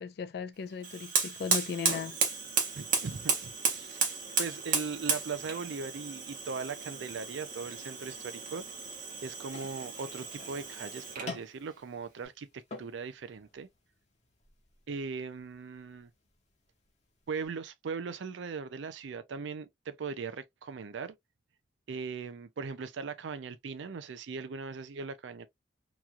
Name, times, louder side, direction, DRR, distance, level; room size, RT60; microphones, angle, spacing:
voice 1, 0.0-2.2, left 6 dB, 55° left, 0.3 m, -37 dB
Fire, 0.8-11.4, right 5 dB, 45° right, 1.0 m, -34 dB
voice 2, 2.7-8.7 9.2-13.7 14.9-16.1 17.3-21.1 21.9-25.5, right 5 dB, 75° right, 0.4 m, -39 dB
sound 1, 9.5-17.5, left 3 dB, 35° left, 0.8 m, -50 dB
3.0 x 2.3 x 2.5 m
head